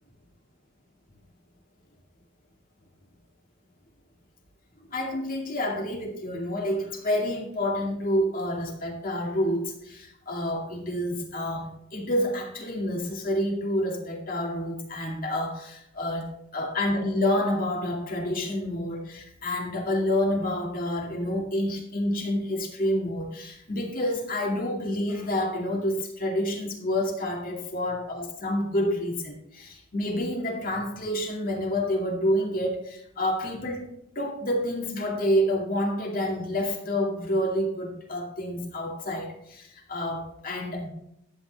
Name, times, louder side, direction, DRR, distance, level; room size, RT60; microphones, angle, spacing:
voice 1, 4.9-33.9 34.2-40.9, left 1 dB, 40° left, 0 dB, 2.3 m, -28 dB
13.5 x 8.9 x 3.4 m, 0.78 s
head